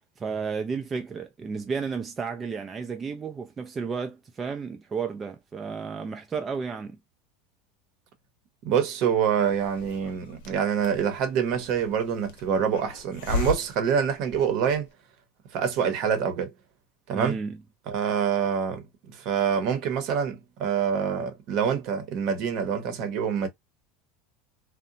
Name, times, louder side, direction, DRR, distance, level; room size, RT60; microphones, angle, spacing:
voice 1, 0.2-7.0 17.1-17.6, right 5 dB, 20° right, 0.4 m, -32 dB
voice 2, 8.6-14.9 15.5-16.5 17.1-17.4 17.9-23.5, right 7 dB, 55° right, 0.8 m, -26 dB
Hiss, 9.4-14.9, left 4 dB, 75° left, 0.7 m, -37 dB
2.8 x 2.1 x 2.5 m
supercardioid pair, 125°, 0 cm